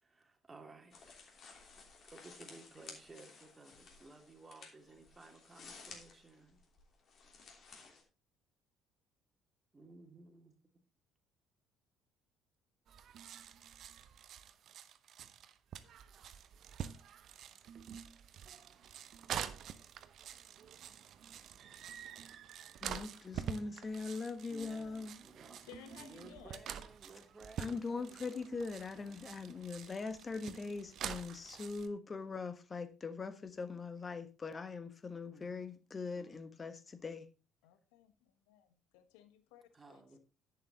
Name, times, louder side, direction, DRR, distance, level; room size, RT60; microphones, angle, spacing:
voice 1, 0.0-1.0 2.0-6.6 9.7-10.5 24.5-25.7 25.9-28.2 29.2-29.3 35.3-35.7 36.1-36.4 39.7-40.2, right 2 dB, 25° right, 2.6 m, -56 dB
sound 1, 0.9-8.0, left 4 dB, 45° left, 3.0 m, -56 dB
sound 2, 12.9-31.9, right 9 dB, 50° right, 0.9 m, -47 dB
voice 2, 22.8-25.2 27.6-37.3, left 4 dB, 30° left, 1.4 m, -41 dB
voice 3, 25.6-26.6 37.6-39.6 39.9-40.2, left 10 dB, 70° left, 1.1 m, -58 dB
10.5 x 8.2 x 3.9 m
figure-of-eight pair, 55°, 0 cm